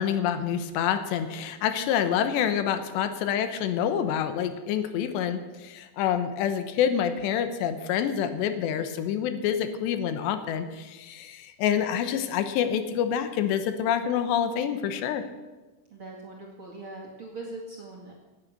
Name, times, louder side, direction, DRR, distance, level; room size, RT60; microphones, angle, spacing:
voice 1, 0.0-15.2, left 9 dB, 85° left, 9 dB, 3.1 m, -27 dB
voice 2, 15.9-18.1, right 2 dB, 40° right, -2 dB, 2.1 m, -41 dB
18.0 x 8.9 x 6.6 m, 1.2 s
omnidirectional pair, 4.9 m